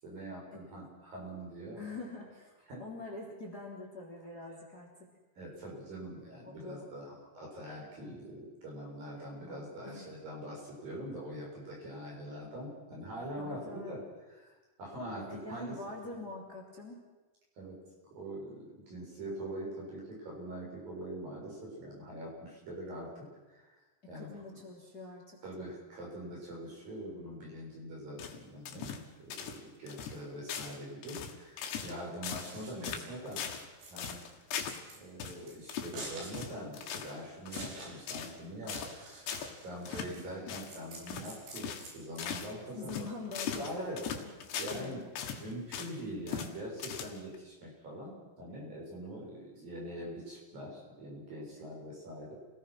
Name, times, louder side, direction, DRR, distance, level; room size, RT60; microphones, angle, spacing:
voice 1, 0.0-1.8 2.7-2.8 5.4-14.0 14.3-14.5 14.8-15.8 16.1-16.2 17.6-17.8 18.1-23.8 24.1-24.6 25.4-33.4 33.9-34.2 35.0-38.8 39.1-39.2 39.6-43.1 43.3-44.0 44.6-45.0 45.4-52.3, right 1 dB, 55° right, -3 dB, 9.0 m, -43 dB
voice 2, 1.7-4.9 6.4-6.9 9.1-10.1 13.4-14.0 15.3-17.0 24.1-25.4 42.8-44.4 44.7-45.0, left 3 dB, 25° left, 0 dB, 3.6 m, -45 dB
sound 1, 28.2-29.1 29.3-29.6 29.9-30.2 30.5-30.8 31.0-32.0 32.2-32.6 32.8-33.7 34.0-34.8 35.2-35.4 35.7-36.0 36.3-37.2 37.5-37.8 38.1-38.4 38.7-39.0 39.3-39.5 39.9-40.1 40.5-40.7 41.1-41.3 41.6-41.9 42.2-42.5 42.9-44.9 45.2-46.0 46.3-46.5 46.8-47.4, left 8 dB, 85° left, 3.9 m, -39 dB
Scissors, 32.2-42.8, right 2 dB, 85° right, 7.5 m, -49 dB
28.5 x 19.0 x 6.1 m, 1.2 s
omnidirectional pair, 4.7 m